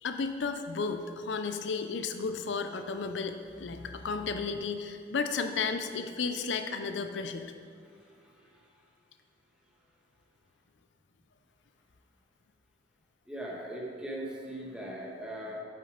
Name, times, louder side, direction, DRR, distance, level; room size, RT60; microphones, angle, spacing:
voice 1, 0.0-7.4, left 4 dB, 80° left, 8 dB, 0.5 m, -33 dB
voice 2, 7.8-8.7 13.3-15.6, right 1 dB, 5° right, -4 dB, 1.4 m, -40 dB
8.9 x 6.6 x 5.0 m, 2.2 s
head